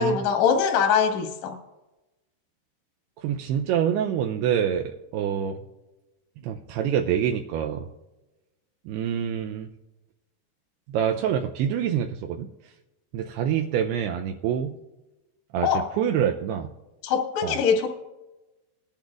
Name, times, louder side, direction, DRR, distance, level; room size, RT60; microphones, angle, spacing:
voice 1, 0.0-1.6 15.6-15.9 17.0-17.9, left 6 dB, 60° left, 2 dB, 1.8 m, -22 dB
voice 2, 3.2-5.6 6.4-7.8 8.9-9.7 10.9-12.5 13.1-14.7 15.5-15.7 16.0-16.7 17.4-17.6, right 9 dB, 85° right, 4 dB, 2.3 m, -26 dB
20.5 x 10.5 x 2.4 m, 1.0 s
omnidirectional pair, 5.1 m